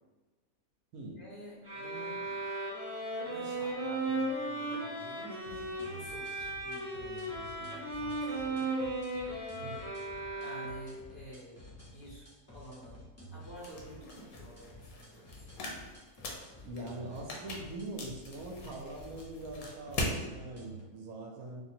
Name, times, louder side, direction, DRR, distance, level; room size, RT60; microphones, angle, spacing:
voice 1, 1.2-2.4 3.2-8.7 10.3-11.6 11.9-15.8, right 1 dB, 40° left, -7 dB, 1.0 m, -50 dB
sound 1, 1.6-11.1, right 2 dB, 30° right, 1.5 m, -36 dB
sound 2, 5.4-20.8, equal, 20° left, 0.4 m, -52 dB
voice 2, 9.6-9.9 16.6-21.6, right 2 dB, 70° right, 1 dB, 0.9 m, -43 dB
sound 3, 13.6-20.2, left 2 dB, 70° left, 1.1 m, -41 dB
2.7 x 2.7 x 4.2 m, 1.3 s
omnidirectional pair, 1.6 m